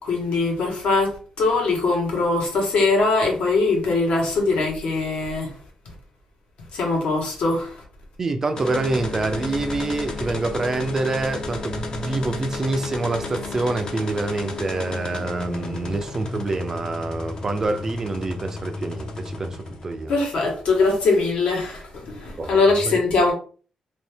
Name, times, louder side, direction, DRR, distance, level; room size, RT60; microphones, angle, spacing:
voice 1, 0.0-5.5 6.7-7.8 20.1-23.3, left 3 dB, 65° left, 1.2 m, -21 dB
voice 2, 8.2-20.1 22.4-23.0, right 3 dB, 25° right, 0.3 m, -26 dB
sound 1, 8.5-20.2, left 3 dB, 35° left, 0.5 m, -33 dB
2.7 x 2.7 x 3.4 m
wide cardioid pair, 170°, 2 cm